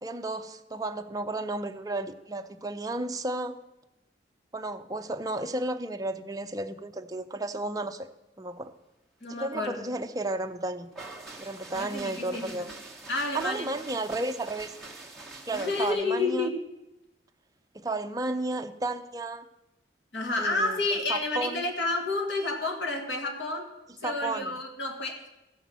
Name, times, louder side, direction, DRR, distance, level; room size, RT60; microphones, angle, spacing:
voice 1, 0.0-3.6 4.5-8.1 8.4-8.7 9.3-10.9 11.4-12.7 13.3-14.7 15.5-16.5 17.7-19.4 20.4-21.6 24.0-24.6, right 2 dB, 20° right, 7 dB, 0.6 m, -33 dB
voice 2, 9.2-9.9 11.7-12.5 13.1-13.7 15.5-16.5 20.1-23.7 24.0-25.3, left 2 dB, 80° left, 3 dB, 1.8 m, -30 dB
sound 1, 10.9-15.9, right 3 dB, ahead, 1.3 m, -45 dB
14.5 x 5.7 x 7.5 m, 0.94 s
head